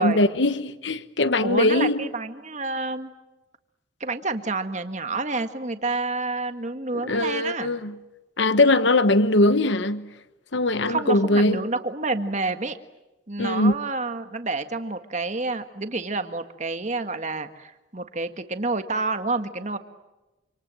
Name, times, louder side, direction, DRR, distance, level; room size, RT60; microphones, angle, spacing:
voice 1, 0.0-2.1 7.1-7.9 8.4-10.1 10.5-11.6 13.4-13.7, left 2 dB, 65° left, 1.2 m, -21 dB
voice 2, 1.4-3.1 4.0-7.7 10.9-12.8 13.3-19.8, right 3 dB, 35° right, 1.7 m, -29 dB
28.0 x 27.0 x 7.8 m
head